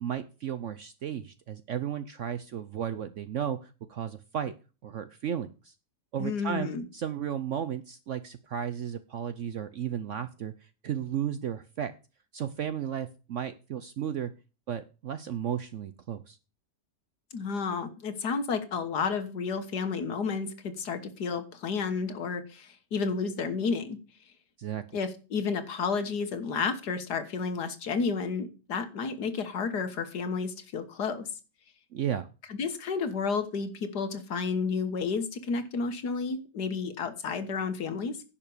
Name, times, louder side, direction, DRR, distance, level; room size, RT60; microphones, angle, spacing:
voice 1, 0.0-4.5 4.8-5.7 6.1-10.5 10.8-11.9 12.3-14.3 14.7-16.4 24.6-24.8 31.9-32.3, right 9 dB, 60° right, 12 dB, 0.8 m, -34 dB
voice 2, 6.2-6.9 17.3-24.0 24.9-31.3 32.5-38.2, left 5 dB, 70° left, 9 dB, 1.9 m, -31 dB
10.5 x 5.8 x 7.0 m, 0.34 s
omnidirectional pair, 1.8 m